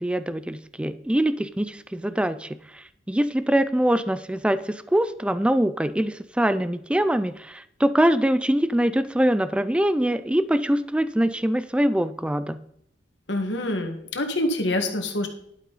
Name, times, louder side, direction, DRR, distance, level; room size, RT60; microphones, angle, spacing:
voice 1, 0.0-12.6, right 1 dB, 5° right, 13 dB, 0.4 m, -23 dB
voice 2, 13.3-15.3, left 1 dB, 70° left, 4 dB, 1.8 m, -26 dB
11.5 x 9.2 x 4.1 m, 0.71 s
head